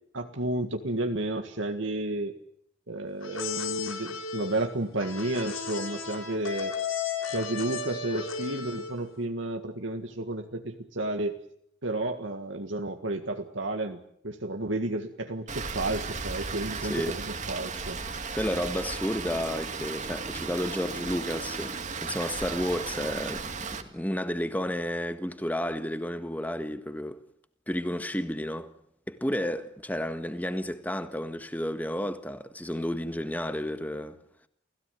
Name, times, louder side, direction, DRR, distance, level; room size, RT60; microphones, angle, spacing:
voice 1, 0.1-2.4 2.9-6.8 7.3-11.4 11.8-18.0, right 2 dB, 70° right, 1.8 m, -32 dB
sound 1, 3.2-9.1, left 5 dB, 85° left, 3.8 m, -34 dB
Rain, 15.5-23.8, right 4 dB, 35° right, 2.1 m, -35 dB
voice 2, 16.8-17.2 18.3-27.2 27.7-28.7 29.1-34.2, equal, 10° left, 1.5 m, -32 dB
29.5 x 16.5 x 9.3 m
head